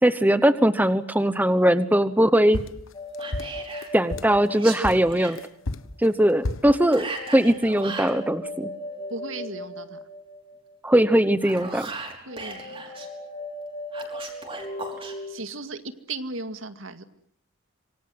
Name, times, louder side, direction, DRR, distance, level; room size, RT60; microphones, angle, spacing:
voice 1, 0.0-2.6 3.9-5.4 6.0-8.7 10.8-11.9, right 1 dB, 10° right, 12 dB, 1.0 m, -20 dB
sound 1, 2.5-4.4 4.8-6.8, left 2 dB, 80° left, 1.2 m, -32 dB
sound 2, 2.9-5.6 7.0-10.9 12.3-15.3, left 1 dB, 25° left, 3.3 m, -38 dB
Whispering, 3.2-3.9 4.5-5.4 6.9-8.2 11.2-13.1 13.9-15.1, right 3 dB, 25° right, 5.6 m, -37 dB
voice 2, 9.1-10.0 12.3-12.8 15.3-17.0, right 3 dB, 75° right, 9 dB, 2.1 m, -36 dB
26.5 x 24.5 x 8.0 m, 0.68 s
head